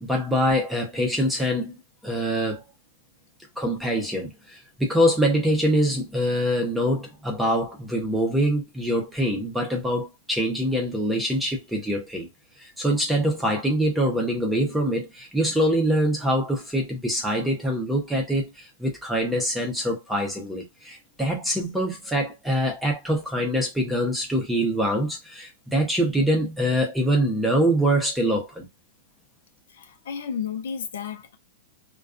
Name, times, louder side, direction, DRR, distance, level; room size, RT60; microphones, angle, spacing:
voice 1, 0.0-2.6 3.6-12.3 12.6-28.7, equal, 5° right, 0.6 m, -24 dB
voice 2, 29.7-31.4, left 7 dB, 75° left, 0.6 m, -32 dB
2.4 x 2.3 x 2.4 m
supercardioid pair, 170°, 0 cm